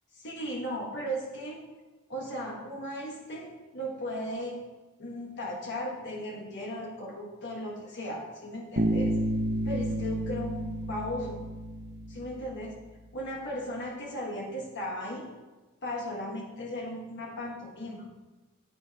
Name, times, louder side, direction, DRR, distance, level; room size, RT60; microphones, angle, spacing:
voice 1, 0.2-1.6 2.1-4.6 5.0-9.2 9.6-11.4 12.1-12.7 13.1-15.3 15.8-18.0, equal, 55° left, -2 dB, 1.5 m, -36 dB
Bass guitar, 8.8-12.5, right 1 dB, 50° right, 0.8 m, -30 dB
14.5 x 8.7 x 3.0 m, 1.2 s
head